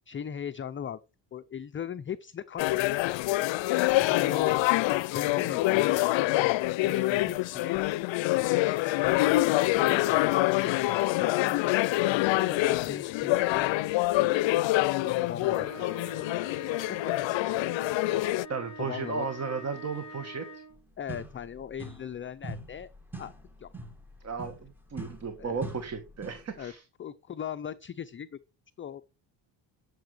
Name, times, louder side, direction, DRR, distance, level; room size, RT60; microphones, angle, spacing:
voice 1, 0.1-1.0 1.3-2.9 3.3-3.4 4.0-4.6 5.1-6.5 6.8-7.8 8.6-9.4 9.7-11.7 12.3-14.5 15.0-16.2 16.5-17.2 17.4-17.5 18.8-19.3 21.0-22.9 23.2-23.3 23.6-23.7 25.4-25.6 26.6-26.7 27.0-28.4 28.8-29.1, left 8 dB, 30° left, 0.5 m, -39 dB
sound 1, 2.6-18.5, left 18 dB, 80° left, 0.5 m, -26 dB
sound 2, 15.3-20.8, right 1 dB, 10° left, 5.2 m, -45 dB
voice 2, 18.5-20.5 24.2-26.8, right 5 dB, 35° right, 1.5 m, -34 dB
sound 3, 20.7-20.8 21.1-22.2 22.4-26.6, right 2 dB, 5° right, 1.8 m, -43 dB
12.0 x 6.8 x 4.9 m
cardioid pair, 150°, 44 cm